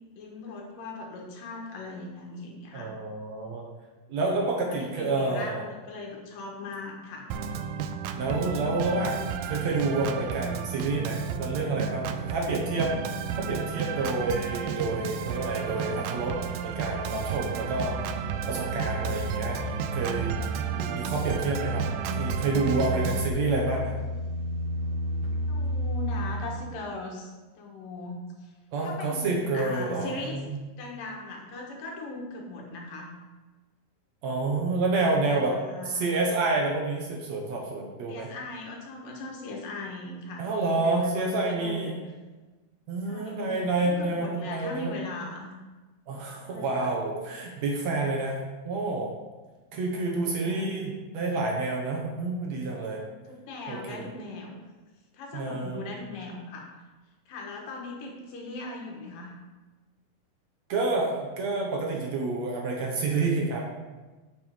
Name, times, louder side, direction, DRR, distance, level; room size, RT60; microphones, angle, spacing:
voice 1, 0.1-2.9 4.5-7.3 13.5-14.2 19.0-19.3 25.5-28.5 28.8-30.4 30.8-33.1 35.3-36.1 38.1-42.0 43.0-45.5 46.4-46.9 49.9-50.8 53.3-54.6 55.1-56.7 57.3-59.3, left 2 dB, 80° left, 0 dB, 3.0 m, -39 dB
voice 2, 2.7-3.7 4.1-5.6 8.2-18.0 18.5-19.6 19.9-20.4 20.7-21.8 22.2-23.9 28.7-30.6 34.2-35.6 35.9-38.3 40.4-41.9 42.9-44.9 46.1-49.1 49.7-53.0 53.7-54.1 55.3-55.8 60.7-63.7, right 3 dB, 65° right, -1 dB, 2.1 m, -29 dB
Organ, 7.3-23.3, right 7 dB, 90° right, 2.3 m, -33 dB
sound 1, 9.4-12.3 14.2-14.4 15.1-26.7, equal, 30° right, 1.5 m, -33 dB
7.1 x 6.8 x 5.0 m, 1.2 s
omnidirectional pair, 3.8 m